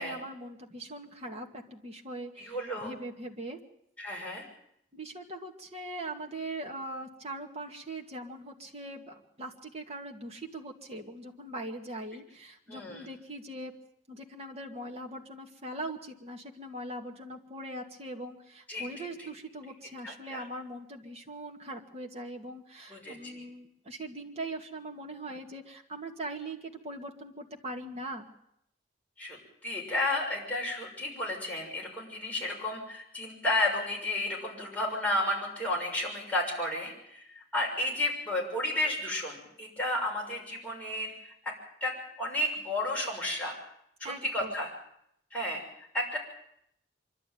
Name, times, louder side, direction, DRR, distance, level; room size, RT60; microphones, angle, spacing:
voice 1, 0.0-3.6 4.9-13.7 14.1-28.3 44.0-44.5, right 1 dB, 35° right, 2 dB, 2.2 m, -41 dB
voice 2, 2.4-2.9 4.0-4.4 12.7-13.1 18.7-19.1 20.0-20.4 22.9-23.4 29.2-41.3 41.8-43.6 44.0-44.7 45.3-46.2, left 1 dB, 10° left, -4 dB, 6.5 m, -32 dB
25.0 x 12.5 x 9.3 m, 0.75 s
head